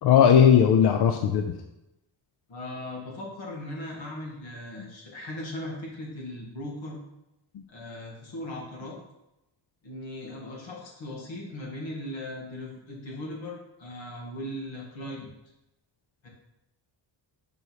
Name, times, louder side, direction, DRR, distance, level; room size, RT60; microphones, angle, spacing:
voice 1, 0.0-1.5 4.8-4.9, left 8 dB, 60° left, 5 dB, 0.6 m, -18 dB
voice 2, 2.5-7.0 7.7-9.0 9.8-15.3 16.2-16.3, left 1 dB, 90° left, -2 dB, 2.2 m, -38 dB
5.5 x 5.5 x 4.8 m, 0.90 s
wide cardioid pair, 145°, 44 cm